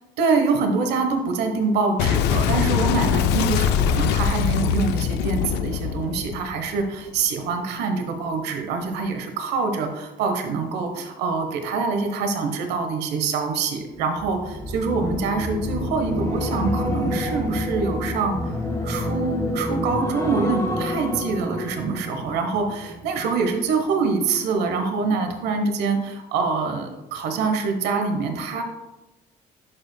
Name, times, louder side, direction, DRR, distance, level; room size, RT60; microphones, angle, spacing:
voice 1, 0.2-18.6 18.8-28.6, right 4 dB, 85° right, 5 dB, 1.0 m, -25 dB
Boom, 2.0-7.2, left 8 dB, 85° left, 0.4 m, -22 dB
sound 1, 14.2-23.5 23.8-24.2, left 1 dB, 20° left, 1.9 m, -28 dB
11.0 x 5.4 x 2.2 m, 1.1 s
cardioid pair, 110°, 17 cm